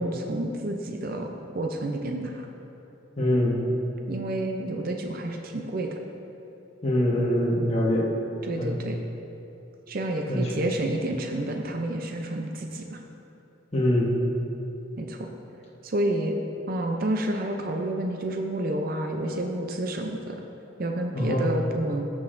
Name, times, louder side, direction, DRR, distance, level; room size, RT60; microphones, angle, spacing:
voice 1, 0.0-2.5 4.1-6.0 8.4-9.0 9.9-13.0 15.0-15.3 15.8-16.3 16.7-20.4 20.8-22.0, right 1 dB, 45° right, 3 dB, 0.5 m, -29 dB
voice 2, 3.2-3.6 6.8-8.1 8.6-8.7 10.3-10.5 13.7-14.1 21.1-21.5, left 1 dB, 30° left, -5 dB, 1.2 m, -23 dB
14.0 x 6.2 x 2.6 m, 2.9 s
head